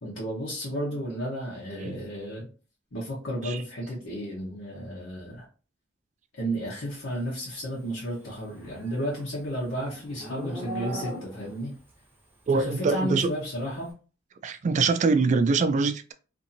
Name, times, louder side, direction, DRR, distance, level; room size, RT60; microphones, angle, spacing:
voice 1, 0.0-2.5 2.9-5.4 6.3-11.7 12.5-13.9, equal, 75° left, 0.9 m, -33 dB
Livestock farm animals working animals, 8.4-11.6, equal, 10° right, 0.8 m, -39 dB
voice 2, 12.5-13.3 14.4-16.1, right 4 dB, 40° right, 0.3 m, -24 dB
2.6 x 2.6 x 2.6 m
head